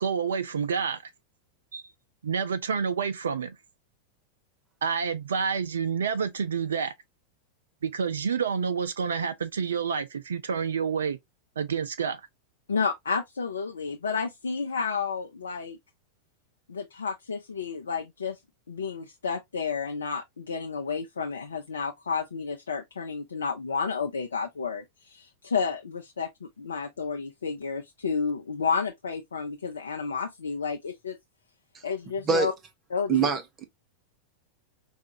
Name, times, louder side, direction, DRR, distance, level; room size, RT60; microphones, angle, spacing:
voice 1, 0.0-1.1 1.7-1.9 2.2-3.6 4.8-6.9 7.8-11.2 11.6-12.2, right 6 dB, 65° right, 0.4 m, -28 dB
voice 2, 12.7-15.8 16.7-18.4 18.7-31.2 31.8-32.5 32.9-33.3, left 5 dB, 70° left, 0.5 m, -31 dB
voice 3, 33.1-33.6, right 6 dB, 25° right, 0.8 m, -25 dB
4.8 x 2.4 x 2.7 m
figure-of-eight pair, 90°, 0 cm